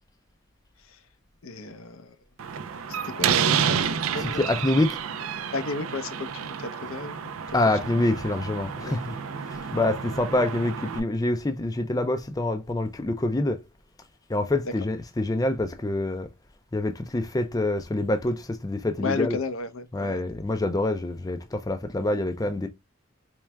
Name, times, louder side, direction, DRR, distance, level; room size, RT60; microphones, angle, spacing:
voice 1, 1.4-2.2 2.9-4.4 5.5-7.6 8.8-9.0 9.4-9.5 14.6-14.7 19.0-20.2, left 3 dB, 80° left, 0.7 m, -33 dB
Slam, 2.4-11.0, right 7 dB, 85° right, 0.5 m, -30 dB
voice 2, 4.1-5.0 7.5-9.2 9.5-13.6 14.3-16.3 16.7-19.4 19.9-22.7, left 2 dB, 15° left, 0.4 m, -26 dB
4.5 x 3.2 x 2.2 m
head